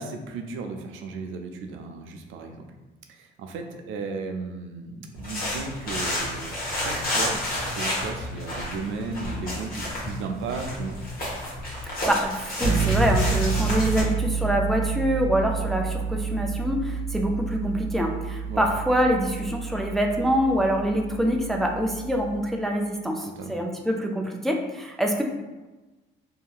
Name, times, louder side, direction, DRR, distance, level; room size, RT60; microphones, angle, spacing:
voice 1, 0.0-2.7 3.1-11.0 18.5-18.7 23.3-23.6, right 4 dB, 75° right, 4 dB, 0.4 m, -35 dB
sound 1, 5.1-14.0, left 1 dB, 45° left, 1.1 m, -30 dB
voice 2, 11.9-25.2, equal, ahead, 1 dB, 0.3 m, -25 dB
sound 2, 12.6-22.4, right 6 dB, 90° left, 0.7 m, -29 dB
2.7 x 2.7 x 2.3 m, 1.1 s
cardioid pair, 85°, 21 cm